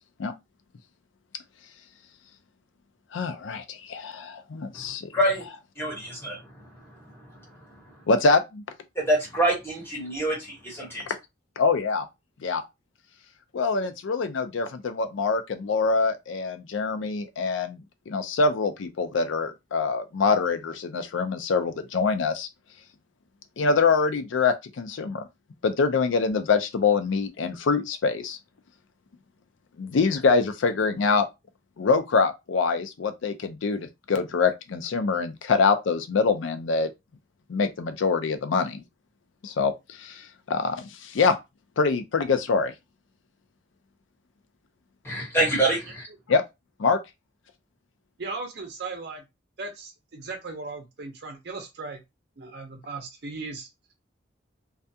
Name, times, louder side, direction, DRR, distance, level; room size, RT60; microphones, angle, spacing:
voice 1, 3.1-5.1 8.1-8.6 11.1-11.2 11.6-12.1 12.4-12.6 13.5-17.8 18.1-22.5 23.6-25.3 25.6-28.4 29.8-31.3 31.8-36.9 37.5-38.8 39.4-41.4 41.8-42.7 46.3-46.4 46.8-47.0, left 4 dB, 80° left, 0.4 m, -24 dB
voice 2, 5.1-5.4 5.8-6.4 8.9-11.0 45.0-46.0, right 1 dB, 10° left, 1.1 m, -25 dB
voice 3, 48.2-49.2 49.6-52.0 52.4-53.7, right 3 dB, 60° right, 0.6 m, -37 dB
2.3 x 2.2 x 2.6 m
head